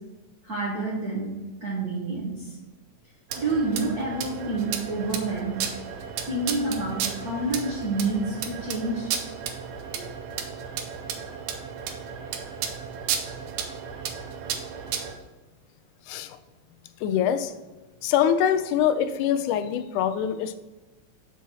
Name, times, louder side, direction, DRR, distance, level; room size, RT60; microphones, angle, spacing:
voice 1, 0.4-1.3 1.6-2.6 3.4-5.6 6.2-9.1, right 2 dB, 60° right, -6 dB, 1.0 m, -28 dB
sound 1, 3.3-15.1, right 7 dB, 80° right, 2.0 m, -33 dB
voice 2, 16.1-16.4 17.0-17.5 18.0-20.6, left 9 dB, 90° left, 11 dB, 2.0 m, -24 dB
5.9 x 4.1 x 6.1 m, 1.1 s
omnidirectional pair, 3.4 m